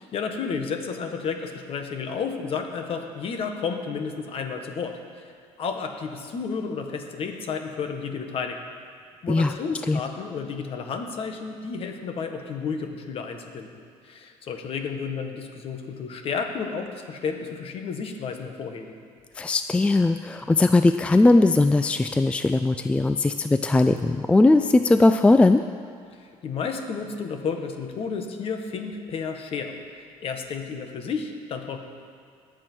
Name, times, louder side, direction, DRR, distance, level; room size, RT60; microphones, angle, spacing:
voice 1, 0.0-8.6 9.2-13.7 14.0-18.9 26.1-31.8, left 5 dB, 50° left, 5 dB, 1.5 m, -32 dB
voice 2, 19.4-25.6, left 2 dB, 10° left, 9 dB, 0.3 m, -19 dB
20.5 x 7.8 x 4.6 m, 2.2 s
cardioid pair, 115°, 13 cm